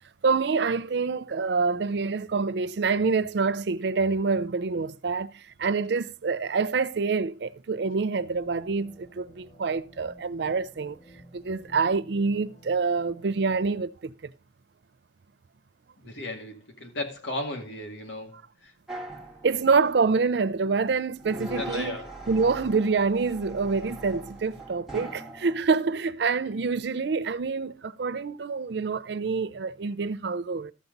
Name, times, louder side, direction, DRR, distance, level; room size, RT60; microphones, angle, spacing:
voice 1, 0.2-11.0 11.3-14.1 19.4-22.0 22.3-30.7, right 4 dB, 65° right, 0.5 m, -26 dB
sound 1, 8.3-13.3, equal, 60° left, 3.6 m, -53 dB
voice 2, 16.0-18.7 21.6-22.1, left 2 dB, 85° left, 2.2 m, -35 dB
sound 2, 18.9-20.2 21.2-25.6, right 1 dB, ahead, 1.6 m, -40 dB
13.0 x 7.1 x 3.9 m
head